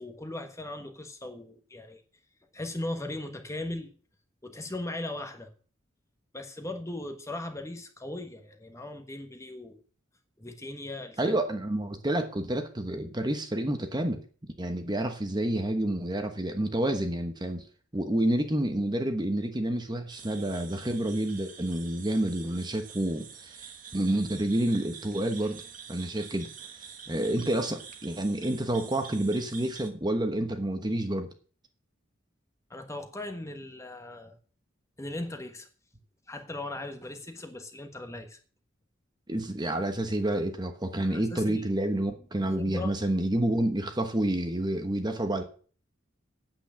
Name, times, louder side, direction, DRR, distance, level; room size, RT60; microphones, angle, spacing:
voice 1, 0.0-2.0 2.5-3.9 4.4-5.5 6.3-9.8 10.4-11.4 32.7-34.4 35.0-35.7 36.3-38.4 41.1-41.7 42.6-42.9, left 1 dB, 15° left, 1.3 m, -38 dB
voice 2, 11.2-14.2 14.6-17.6 17.9-23.6 23.9-25.6 25.9-26.5 27.1-31.3 39.3-45.4, right 1 dB, 20° right, 1.1 m, -29 dB
sound 1, 20.1-29.9, right 7 dB, 40° right, 1.4 m, -47 dB
9.0 x 8.1 x 7.4 m
head